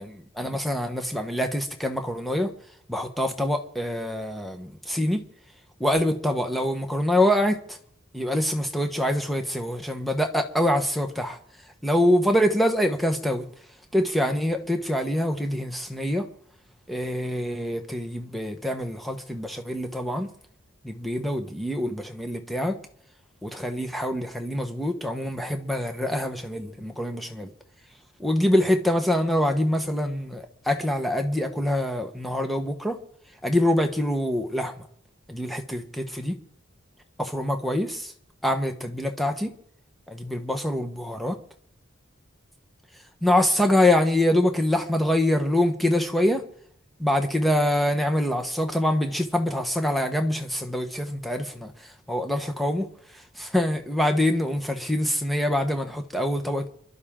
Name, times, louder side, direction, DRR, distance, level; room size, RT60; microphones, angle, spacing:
voice 1, 0.0-2.5 2.9-5.2 5.8-7.8 8.1-11.4 11.8-13.5 13.9-16.3 16.9-20.3 20.8-22.8 23.4-27.5 28.2-33.0 33.4-34.9 35.3-36.4 37.2-38.1 38.4-39.5 40.1-41.4 43.2-46.4 47.0-56.7, left 1 dB, ahead, 1.1 m, -25 dB
27.0 x 11.5 x 3.7 m
head